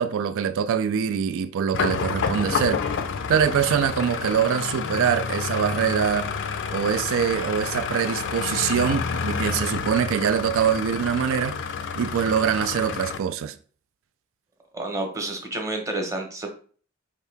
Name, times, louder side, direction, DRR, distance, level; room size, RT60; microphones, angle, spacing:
voice 1, 0.0-2.8 3.3-6.3 6.7-11.6 12.0-13.5, right 8 dB, 65° right, 0.3 m, -24 dB
sound 1, 1.7-13.2, left 6 dB, 55° left, 0.4 m, -29 dB
voice 2, 14.7-16.5, right 2 dB, 15° right, 0.9 m, -30 dB
4.6 x 2.8 x 3.4 m
head